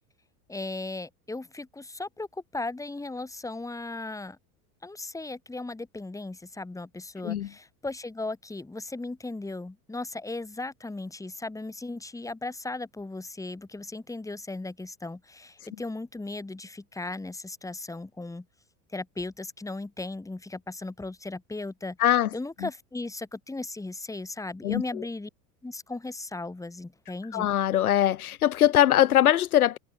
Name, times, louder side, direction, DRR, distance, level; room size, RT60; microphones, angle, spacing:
voice 1, 0.5-4.4 4.8-18.5 18.9-22.0 22.3-25.3 25.6-27.5, left 2 dB, 5° left, 2.5 m, -37 dB
voice 2, 22.0-22.3 22.6-22.7 24.6-25.0 27.3-29.8, left 12 dB, 90° left, 2.7 m, -22 dB
hypercardioid pair, 100°, 43 cm